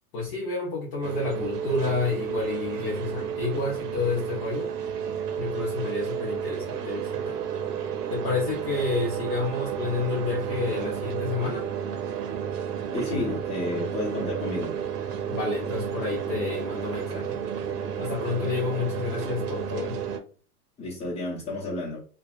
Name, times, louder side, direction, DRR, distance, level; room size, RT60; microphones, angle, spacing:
voice 1, 0.1-4.7 5.4-7.4 8.1-11.7 15.3-17.4 18.0-20.0, left 4 dB, 35° left, 0.6 m, -30 dB
sound 1, 1.0-20.2, right 8 dB, 75° right, 0.7 m, -32 dB
voice 2, 12.9-14.7 20.8-22.0, left 2 dB, 15° left, 1.0 m, -31 dB
2.6 x 2.3 x 2.4 m
hypercardioid pair, 140°, 47 cm